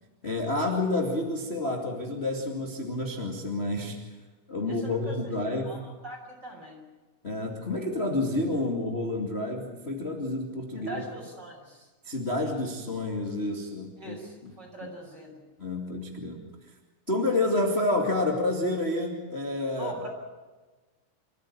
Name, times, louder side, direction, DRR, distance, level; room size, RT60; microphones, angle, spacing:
voice 1, 0.2-4.0 4.5-5.8 7.2-11.0 12.0-14.2 14.4-14.5 15.6-16.4 17.1-19.9, left 2 dB, 40° left, 1 dB, 0.8 m, -29 dB
voice 2, 4.7-5.2 5.5-6.8 10.7-11.9 14.0-15.4 19.8-20.1, right 1 dB, 20° right, 0 dB, 5.5 m, -42 dB
27.5 x 14.5 x 8.8 m, 1.3 s
omnidirectional pair, 5.6 m